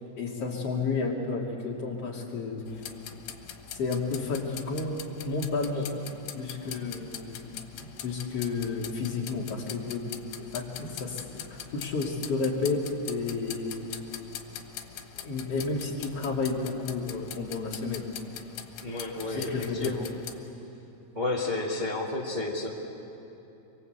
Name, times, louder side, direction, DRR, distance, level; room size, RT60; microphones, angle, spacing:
voice 1, 0.1-2.6 3.7-7.5 7.8-11.2 11.5-14.0 15.2-18.0 19.3-19.9, left 4 dB, 40° left, -2 dB, 3.3 m, -31 dB
sound 1, 2.7-20.4, left 9 dB, 80° left, 3.6 m, -43 dB
voice 2, 18.8-20.0 21.1-22.7, left 2 dB, 20° right, -2 dB, 1.1 m, -31 dB
28.0 x 24.0 x 8.2 m, 2.9 s
omnidirectional pair, 4.9 m